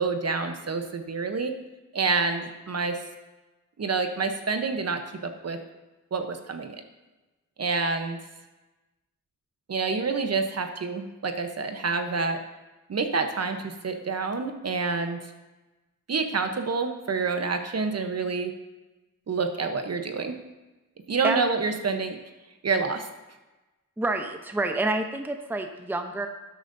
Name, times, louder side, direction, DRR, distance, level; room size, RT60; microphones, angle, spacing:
voice 1, 0.0-1.5 1.9-3.0 3.8-5.6 6.1-6.8 7.6-8.2 9.7-12.4 12.9-15.2 16.1-18.5 19.3-20.3 21.1-22.2 22.6-23.1, right 4 dB, 45° right, 6 dB, 0.9 m, -28 dB
voice 2, 24.0-26.3, right 2 dB, 5° right, 5 dB, 0.6 m, -28 dB
12.0 x 9.1 x 2.6 m, 1.1 s
wide cardioid pair, 105°, 34 cm